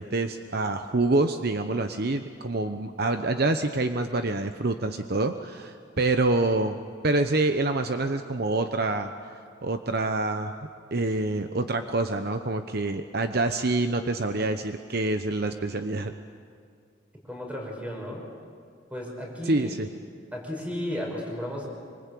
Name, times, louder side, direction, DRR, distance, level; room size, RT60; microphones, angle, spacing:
voice 1, 0.0-6.8 7.0-9.1 9.6-10.5 10.9-16.1 19.4-19.9, right 2 dB, 55° right, 7 dB, 1.0 m, -26 dB
voice 2, 17.2-18.2 18.9-19.7 20.3-21.7, left 1 dB, 5° right, 0 dB, 5.7 m, -34 dB
26.5 x 24.5 x 8.5 m, 2.1 s
head